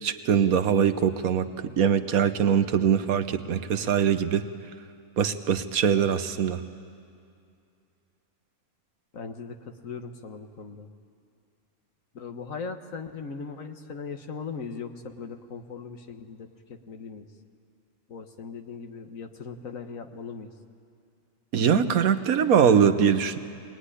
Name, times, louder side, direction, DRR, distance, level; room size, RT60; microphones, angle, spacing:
voice 1, 0.0-4.4 5.2-6.6 21.5-23.4, right 7 dB, 75° right, 10 dB, 1.4 m, -22 dB
voice 2, 9.1-10.9 12.1-16.5 16.9-17.3 18.1-20.5, left 5 dB, 65° left, 6 dB, 1.6 m, -39 dB
24.0 x 19.5 x 9.9 m, 2.4 s
omnidirectional pair, 1.5 m